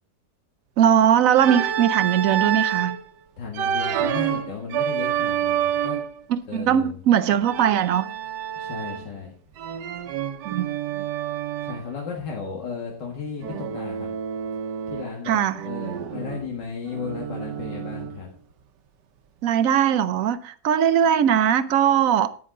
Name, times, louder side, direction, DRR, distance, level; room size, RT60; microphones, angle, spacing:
voice 1, 0.8-3.0 6.3-8.1 10.4-11.1 15.3-15.7 19.4-22.3, right 9 dB, 65° right, 0.9 m, -20 dB
Organ, 1.4-3.0 3.5-6.2 7.4-9.2 9.6-11.9 13.4-15.2 15.5-18.3, right 9 dB, 80° right, 1.4 m, -28 dB
voice 2, 3.4-6.0 6.5-7.0 8.5-9.3 11.6-14.1 14.9-18.3, left 6 dB, 80° left, 2.4 m, -34 dB
10.5 x 9.3 x 3.8 m
omnidirectional pair, 1.9 m